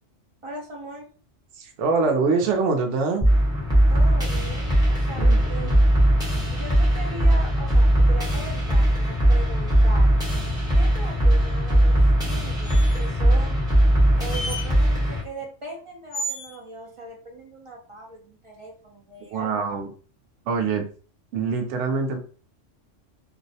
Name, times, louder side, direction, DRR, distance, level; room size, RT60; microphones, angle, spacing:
voice 1, 0.4-1.1 3.9-5.7 6.5-10.1 10.7-13.6 14.2-19.6, right 2 dB, 50° right, -1 dB, 0.3 m, -39 dB
voice 2, 1.6-3.3 5.2-5.8 19.3-19.9 20.5-20.9 21.3-22.2, right 4 dB, 75° right, 4 dB, 0.9 m, -24 dB
sound 1, 3.2-15.2, right 1 dB, 5° right, 1.0 m, -19 dB
sound 2, 12.6-13.2 14.3-14.7 16.1-16.6, right 1 dB, 70° left, 0.9 m, -32 dB
2.6 x 2.0 x 2.6 m, 0.40 s
omnidirectional pair, 1.3 m